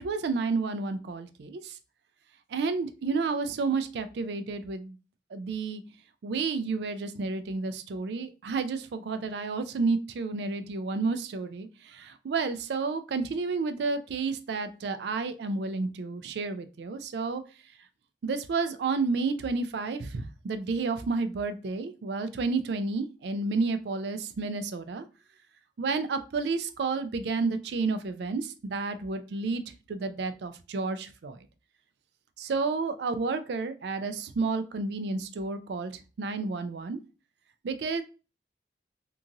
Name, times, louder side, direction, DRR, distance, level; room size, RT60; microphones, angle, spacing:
voice 1, 0.0-1.8 2.5-5.0 5.3-5.8 6.2-17.4 18.2-25.1 25.8-29.6 29.9-31.5 32.4-37.0 37.6-38.0, right 4 dB, 70° right, 10 dB, 0.4 m, -31 dB
2.8 x 2.5 x 2.5 m, 0.32 s
head